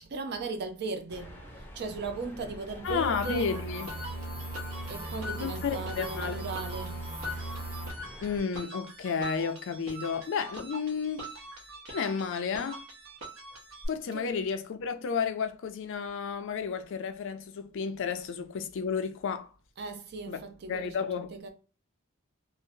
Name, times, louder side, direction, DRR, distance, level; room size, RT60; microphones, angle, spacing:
voice 1, 0.0-1.3 1.7-3.5 4.9-7.2 14.1-14.3 19.8-21.1 21.3-21.5, right 3 dB, 50° right, 0.5 m, -37 dB
sound 1, 1.1-8.4, equal, 10° left, 0.5 m, -46 dB
voice 2, 2.8-3.9 5.4-6.4 8.2-11.3 11.9-12.8 13.9-19.5 20.3-20.4 20.7-21.3, left 6 dB, 60° left, 0.4 m, -32 dB
sound 2, 2.8-7.9, right 2 dB, 25° right, 0.9 m, -38 dB
sound 3, 3.2-13.9, equal, 70° right, 0.9 m, -44 dB
2.6 x 2.1 x 2.6 m
head